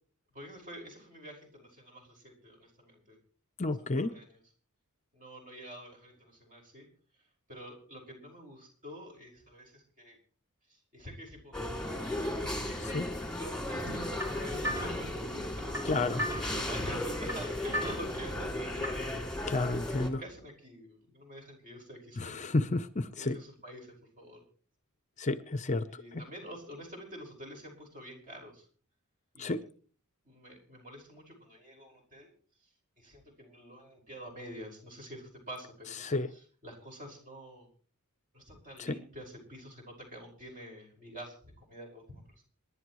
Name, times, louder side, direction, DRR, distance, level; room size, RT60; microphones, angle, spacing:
voice 1, 0.3-3.2 3.8-4.4 5.1-6.9 7.5-10.2 10.7-13.0 13.4-15.8 16.2-19.1 19.9-22.4 23.2-24.4 25.9-28.7 29.3-29.5 30.2-32.3 33.0-36.0 36.3-37.7 38.3-42.4, equal, 35° right, 1 dB, 5.4 m, -47 dB
voice 2, 3.6-4.1 12.8-13.1 15.8-16.2 19.5-20.2 22.2-23.4 25.2-26.2 29.4-29.6 36.0-36.3 38.8-39.0, left 2 dB, 35° left, 12 dB, 0.7 m, -31 dB
sound 1, 11.5-20.1, left 1 dB, 5° left, 2.8 m, -35 dB
sound 2, 13.8-19.2, equal, 15° right, 2.6 m, -39 dB
27.5 x 11.0 x 3.1 m, 0.42 s
head